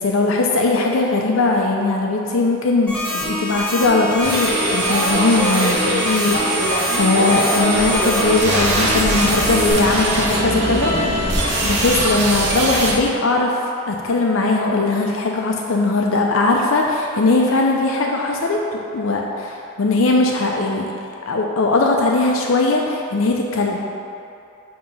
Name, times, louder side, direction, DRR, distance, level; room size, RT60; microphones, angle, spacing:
voice 1, 0.0-11.2 11.6-13.6 13.9-20.9 21.3-23.9, left 3 dB, 70° left, 0 dB, 0.5 m, -19 dB
sound 1, 2.9-9.7, left 1 dB, 5° left, 1.3 m, -25 dB
sound 2, 4.2-12.9, right 1 dB, 50° right, 0.9 m, -22 dB
sound 3, 7.7-13.0, equal, 25° left, 1.0 m, -28 dB
7.6 x 2.9 x 5.4 m, 2.6 s
head